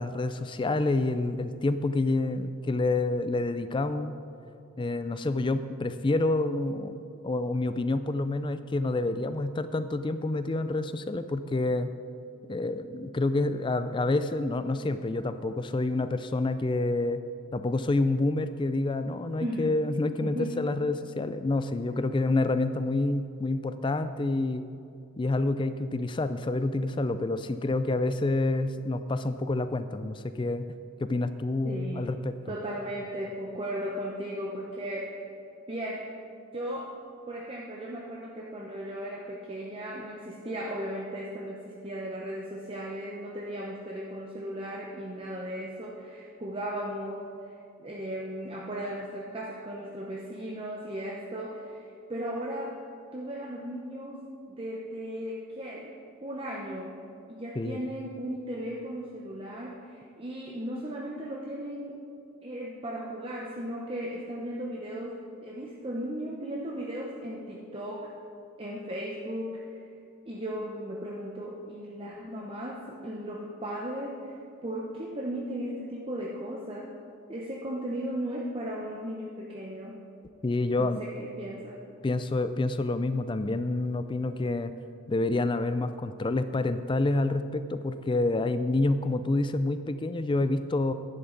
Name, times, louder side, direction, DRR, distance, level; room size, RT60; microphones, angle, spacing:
voice 1, 0.0-4.1 4.8-7.0 7.2-11.9 12.5-17.2 17.5-24.6 25.2-30.6 31.0-32.4 57.6-57.8 80.4-81.0 82.0-84.7 85.1-90.9, left 2 dB, 20° left, 11 dB, 0.3 m, -28 dB
voice 2, 19.4-19.8 20.2-20.7 31.6-32.1 32.5-35.3 35.7-36.1 36.5-37.0 37.3-47.3 47.8-52.8 53.1-55.9 56.2-57.0 57.3-62.0 62.4-68.1 68.6-69.8 70.2-77.0 77.3-80.0 80.8-81.8, equal, 25° right, -3 dB, 0.7 m, -36 dB
11.0 x 10.5 x 3.9 m, 2.5 s
head